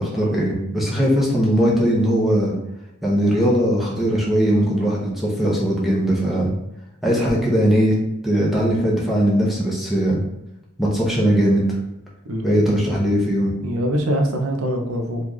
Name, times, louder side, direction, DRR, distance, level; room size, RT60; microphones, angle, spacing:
voice 1, 0.0-2.5 3.0-6.5 7.0-7.9 8.2-10.2 10.8-11.6 12.4-13.5, equal, ahead, -5 dB, 0.7 m, -19 dB
voice 2, 12.3-12.6 13.6-15.3, equal, 85° right, 2 dB, 0.6 m, -23 dB
3.1 x 2.4 x 3.8 m, 0.89 s
head